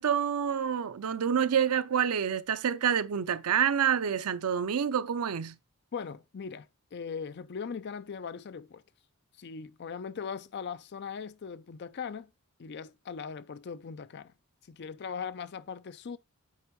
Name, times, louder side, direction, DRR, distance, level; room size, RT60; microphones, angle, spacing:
voice 1, 0.0-5.5, right 8 dB, 80° right, 0.5 m, -27 dB
voice 2, 5.9-8.8 9.4-12.3 12.6-14.3 14.7-16.2, left 6 dB, 50° left, 0.4 m, -39 dB
8.6 x 3.6 x 4.6 m
head